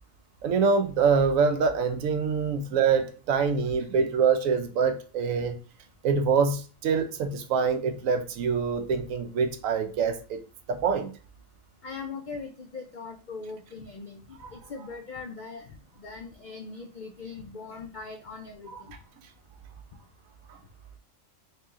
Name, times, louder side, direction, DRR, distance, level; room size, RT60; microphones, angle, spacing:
voice 1, 0.4-5.6 6.0-10.4 10.7-11.1 14.4-14.5 18.7-18.8, right 5 dB, 80° right, 1.0 m, -25 dB
voice 2, 11.8-14.2 14.5-18.7, left 4 dB, 75° left, 0.4 m, -40 dB
3.2 x 2.9 x 3.5 m
omnidirectional pair, 1.4 m